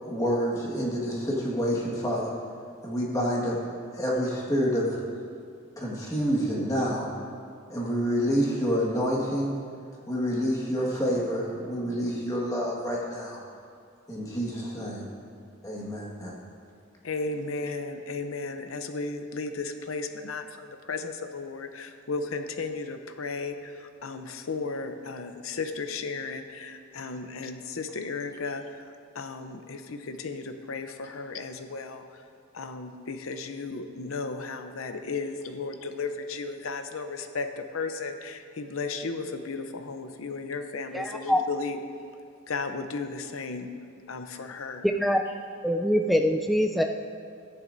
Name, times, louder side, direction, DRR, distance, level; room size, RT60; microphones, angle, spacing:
voice 1, 0.0-2.3 2.8-3.6 3.9-5.0 5.8-7.1 7.7-9.5 10.1-13.4 14.1-15.1 15.6-16.4, equal, 15° left, -4 dB, 1.6 m, -28 dB
voice 2, 17.0-23.7 24.0-28.8 29.1-32.0 32.5-41.8 42.5-43.7 44.1-44.9, left 4 dB, 75° left, 7 dB, 0.7 m, -34 dB
voice 3, 40.9-41.4 44.8-45.2 45.6-46.8, equal, ahead, 3 dB, 0.3 m, -24 dB
14.5 x 10.5 x 2.7 m, 2.3 s
head